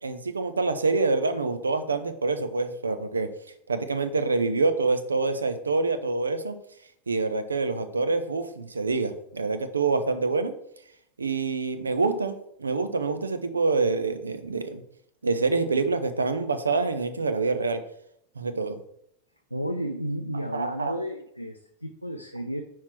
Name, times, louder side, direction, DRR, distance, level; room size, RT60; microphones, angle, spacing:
voice 1, 0.0-3.3 3.7-6.6 7.1-10.5 11.2-14.8 15.2-17.8 18.4-18.8 20.5-20.9, right 3 dB, 75° right, 10 dB, 0.6 m, -26 dB
voice 2, 19.5-22.6, equal, 90° left, 3 dB, 0.5 m, -32 dB
5.7 x 4.6 x 4.5 m, 0.73 s
figure-of-eight pair, 90°, 0 cm